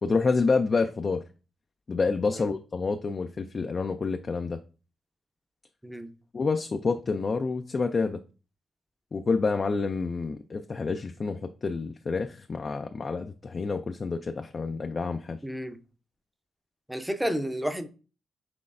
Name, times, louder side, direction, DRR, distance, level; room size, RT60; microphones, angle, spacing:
voice 1, 0.0-1.2 1.9-4.6 6.3-8.2 9.1-15.4, left 4 dB, 45° left, 0.4 m, -28 dB
voice 2, 15.4-15.8 16.9-17.9, equal, 5° right, 0.6 m, -31 dB
6.0 x 3.2 x 2.5 m
supercardioid pair, 55°, 0 cm